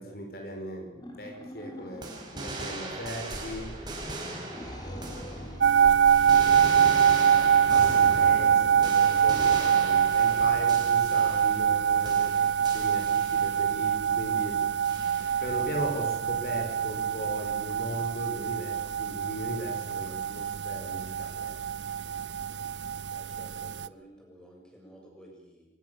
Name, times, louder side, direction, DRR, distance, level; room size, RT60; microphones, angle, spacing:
voice 1, 0.0-3.7 4.8-5.6 7.7-12.3 12.7-14.6 15.4-21.6, equal, 55° left, 3 dB, 5.1 m, -38 dB
sound 1, 1.0-2.7 3.3-8.2, equal, 25° left, 3.1 m, -42 dB
sound 2, 2.0-5.7 6.1-11.8 12.0-13.7 14.8-15.6, right 2 dB, 25° right, 5.3 m, -39 dB
sound 3, 5.6-23.9, right 8 dB, 85° right, 0.7 m, -24 dB
voice 2, 23.1-25.7, equal, 5° left, -1 dB, 7.3 m, -52 dB
24.5 x 19.5 x 7.0 m, 0.90 s
head